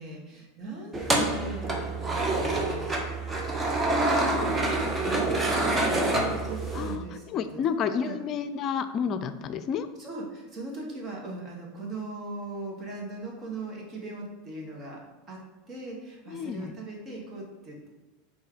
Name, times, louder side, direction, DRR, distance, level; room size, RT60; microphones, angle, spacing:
voice 1, 0.0-2.9 5.0-7.2 7.5-7.6 7.9-8.2 10.0-15.0 15.3-15.4 15.7-17.9, right 2 dB, 35° right, -2 dB, 2.0 m, -39 dB
sound 1, 0.9-6.9, right 2 dB, 15° right, 1.1 m, -27 dB
voice 2, 6.7-9.9 16.3-16.7, left 7 dB, 40° left, 10 dB, 0.5 m, -30 dB
5.6 x 4.3 x 5.0 m, 1.2 s
figure-of-eight pair, 85°, 0 cm